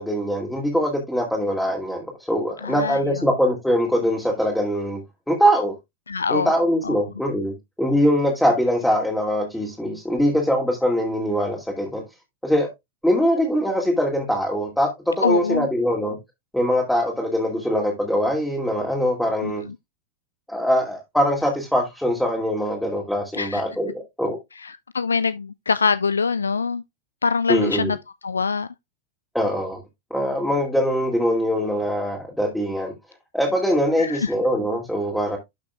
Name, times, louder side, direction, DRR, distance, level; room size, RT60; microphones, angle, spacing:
voice 1, 0.0-5.0 5.3-5.8 6.3-12.0 12.4-12.7 13.0-16.2 16.5-19.6 20.5-24.4 27.5-27.9 29.3-29.8 30.1-32.9 33.3-35.4, equal, 5° left, 2.4 m, -22 dB
voice 2, 2.6-3.0 6.1-6.5 6.8-6.9 15.2-15.7 19.4-19.8 23.3-23.6 24.6-26.8 27.2-28.0 28.2-28.7 34.0-34.3, left 5 dB, 75° left, 0.4 m, -24 dB
12.0 x 6.1 x 2.3 m
figure-of-eight pair, 90°, 0 cm